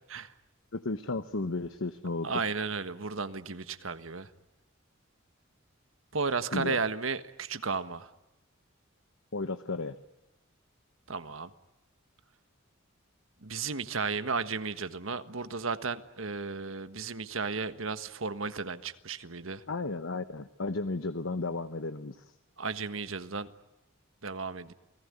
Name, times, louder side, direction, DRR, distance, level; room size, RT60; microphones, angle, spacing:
voice 1, 0.7-2.3 6.5-6.8 9.3-10.0 19.7-22.3, left 3 dB, 75° left, 11 dB, 1.1 m, -34 dB
voice 2, 2.2-4.3 6.1-8.1 11.1-11.5 13.4-19.6 22.6-23.5 24.2-24.7, right 4 dB, 85° right, 11 dB, 1.5 m, -34 dB
29.0 x 19.0 x 9.8 m, 0.95 s
head